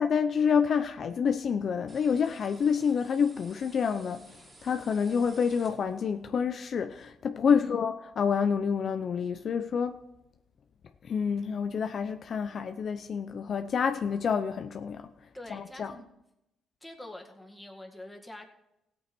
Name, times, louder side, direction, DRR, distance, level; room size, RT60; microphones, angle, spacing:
voice 1, 0.0-10.0 11.0-15.1 15.5-15.9, left 6 dB, 55° left, 0.6 m, -28 dB
sound 1, 1.9-6.2, right 2 dB, 25° right, 2.6 m, -54 dB
voice 2, 15.3-16.1 16.8-18.5, left 1 dB, 10° left, 2.0 m, -45 dB
16.0 x 8.5 x 4.4 m
cardioid pair, 90°, 0 cm